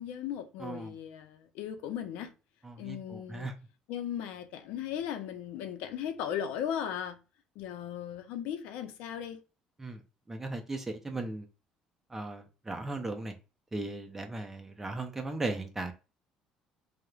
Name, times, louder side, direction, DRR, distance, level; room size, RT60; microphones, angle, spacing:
voice 1, 0.0-2.3 2.8-3.5 3.9-7.2 7.6-9.4, left 9 dB, 85° left, 0.4 m, -37 dB
voice 2, 0.6-0.9 2.6-3.5 9.8-10.0 10.3-11.5 12.1-13.3 13.7-15.9, right 2 dB, 15° right, 0.4 m, -37 dB
3.0 x 2.0 x 2.3 m
cardioid pair, 125°, 2 cm